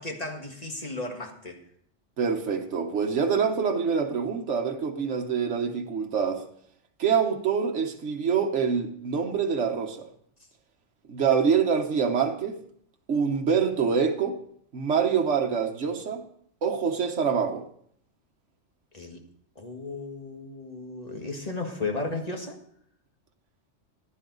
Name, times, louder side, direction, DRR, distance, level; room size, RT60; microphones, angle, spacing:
voice 1, 0.0-1.6 18.9-19.2 19.6-22.6, left 3 dB, 30° left, 3 dB, 1.8 m, -34 dB
voice 2, 2.2-6.4 7.0-10.1 11.1-12.6 13.1-14.4 14.7-16.2 16.6-17.6, right 6 dB, 70° right, 4 dB, 1.5 m, -25 dB
15.5 x 10.5 x 4.0 m, 0.64 s
omnidirectional pair, 1.3 m